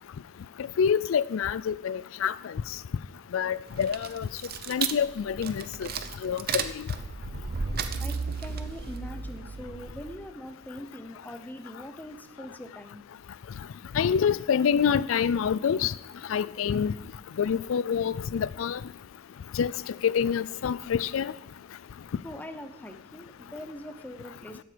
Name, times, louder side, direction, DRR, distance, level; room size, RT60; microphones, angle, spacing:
voice 1, 0.8-2.5 3.3-4.3 4.7-5.9 6.2-6.8 13.9-15.9 16.3-16.9 17.4-18.8 19.5-21.3, left 7 dB, 70° left, 0.4 m, -26 dB
sound 1, 3.7-10.2, right 5 dB, 50° right, 0.6 m, -34 dB
voice 2, 8.0-13.0 22.2-24.6, equal, 10° left, 0.7 m, -42 dB
12.5 x 7.9 x 5.1 m
head